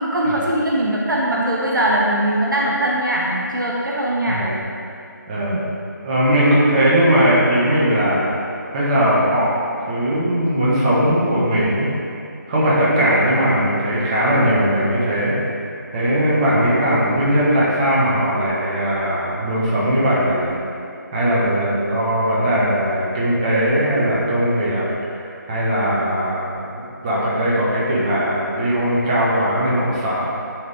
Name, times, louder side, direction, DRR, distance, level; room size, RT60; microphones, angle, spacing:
voice 1, 0.0-4.4 5.3-5.7, right 1 dB, 80° right, -4 dB, 1.2 m, -21 dB
voice 2, 6.0-8.3 8.7-9.6 9.9-11.9 12.5-15.4 15.9-20.6 21.1-30.3, equal, 20° right, -8 dB, 1.5 m, -19 dB
10.5 x 4.1 x 3.6 m, 2.6 s
figure-of-eight pair, 160°, 11 cm